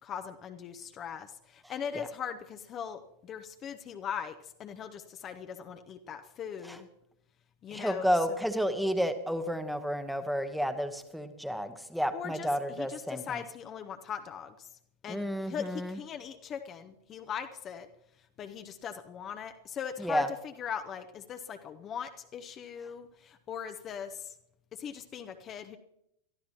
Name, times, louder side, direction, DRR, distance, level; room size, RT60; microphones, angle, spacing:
voice 1, 0.0-6.9 7.6-8.4 12.1-14.7 15.0-17.9 18.2-24.4 24.7-25.8, left 7 dB, 30° left, 7 dB, 0.8 m, -40 dB
voice 2, 7.7-13.4 15.1-16.0 20.0-20.3, equal, ahead, 10 dB, 1.1 m, -31 dB
23.0 x 13.0 x 2.9 m, 0.79 s
figure-of-eight pair, 90°, 0 cm